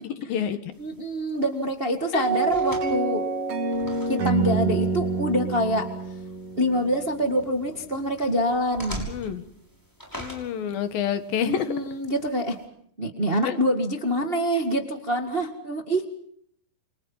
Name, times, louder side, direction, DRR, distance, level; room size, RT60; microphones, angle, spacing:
voice 1, 0.0-0.7 2.1-2.3 9.1-9.4 10.2-11.7 13.4-13.6, left 8 dB, 75° left, 10 dB, 3.3 m, -28 dB
sound 1, 0.7-12.6, equal, 5° left, 5.9 m, -44 dB
voice 2, 0.8-3.2 4.1-5.9 6.6-9.1 11.4-12.6 13.0-16.1, equal, 25° right, 5 dB, 1.3 m, -26 dB
sound 2, 2.2-7.3, right 4 dB, 45° right, 3.0 m, -27 dB
29.5 x 25.0 x 5.6 m, 0.66 s
omnidirectional pair, 4.2 m